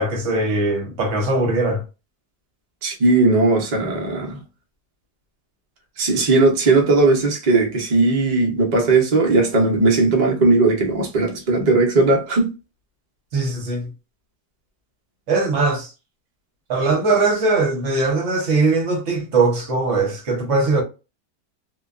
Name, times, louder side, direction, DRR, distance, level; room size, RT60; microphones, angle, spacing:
voice 1, 0.0-1.8 13.3-13.9 15.3-15.9 16.7-20.8, right 3 dB, 55° right, 1.0 m, -20 dB
voice 2, 2.8-4.4 6.0-12.5, right 3 dB, 70° right, 0.4 m, -17 dB
2.7 x 2.2 x 2.3 m
omnidirectional pair, 1.8 m